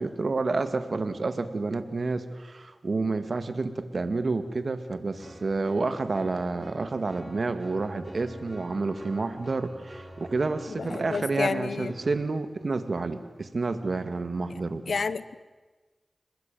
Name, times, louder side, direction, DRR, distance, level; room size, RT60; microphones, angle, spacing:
voice 1, 0.0-14.9, right 3 dB, 70° right, 10 dB, 2.2 m, -29 dB
sound 1, 5.2-12.3, right 1 dB, 20° right, 5.0 m, -46 dB
voice 2, 10.8-11.9 14.9-15.4, left 4 dB, 85° left, 16 dB, 1.0 m, -30 dB
29.0 x 20.5 x 9.3 m, 1.3 s
cardioid pair, 40°, 0 cm